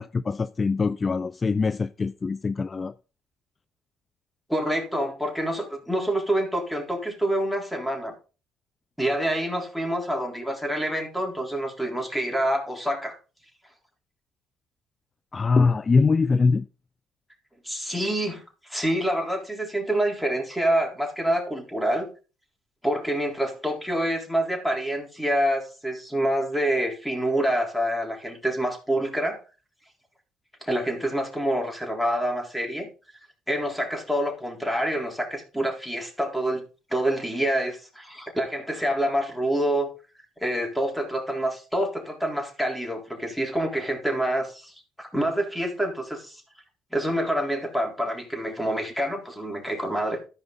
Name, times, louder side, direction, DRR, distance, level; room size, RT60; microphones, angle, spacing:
voice 1, 0.0-3.0 15.3-16.6, left 4 dB, 35° left, 0.4 m, -23 dB
voice 2, 4.5-8.1 9.0-13.2 17.6-22.1 22.8-29.4 30.6-32.9 33.5-36.6 36.9-39.9 40.4-46.4 46.9-50.2, right 1 dB, ahead, 3.6 m, -27 dB
14.0 x 5.3 x 3.9 m
hypercardioid pair, 60°, 0 cm